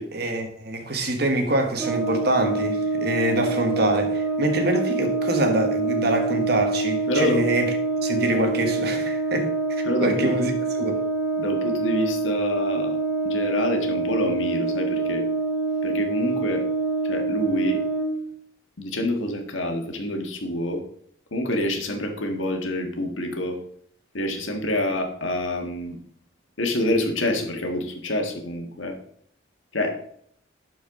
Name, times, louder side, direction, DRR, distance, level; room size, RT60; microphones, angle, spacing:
voice 1, 0.1-11.0, right 1 dB, 55° right, 1.3 m, -25 dB
Brass instrument, 1.8-18.2, right 3 dB, 5° right, 1.1 m, -26 dB
voice 2, 7.1-7.5 9.8-10.3 11.4-13.0 13.2-15.2 15.8-16.6 17.0-17.8 18.8-20.8 21.3-23.6 24.1-26.0 26.6-29.0 29.7-30.2, left 1 dB, 80° left, 1.5 m, -27 dB
11.5 x 4.7 x 3.7 m
head